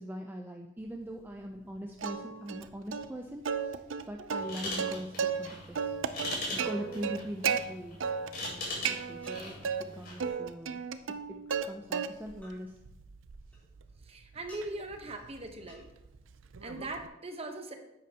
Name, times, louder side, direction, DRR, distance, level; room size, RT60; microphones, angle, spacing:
voice 1, 0.0-5.9 6.5-8.0 8.4-10.8 11.3-12.8, equal, 10° right, 2 dB, 0.5 m, -42 dB
Plucked string instrument, 2.0-2.6 2.9-3.1 3.5-5.5 5.8-7.6 8.0-8.5 8.8-9.8 10.2-11.7 11.9-12.4 12.8-17.1, right 6 dB, 80° right, 0.5 m, -34 dB
sound 1, 4.4-10.3, left 1 dB, 50° left, 3.6 m, -41 dB
sound 2, 8.1-8.2 9.2-9.4 10.3-10.4 11.5-11.7 12.4-12.6 13.5-14.0 14.5-14.7 15.7-15.8, left 1 dB, 10° left, 3.2 m, -55 dB
voice 2, 14.0-15.9 16.6-17.8, right 2 dB, 30° right, 5 dB, 1.0 m, -40 dB
10.5 x 8.6 x 2.9 m, 0.90 s
head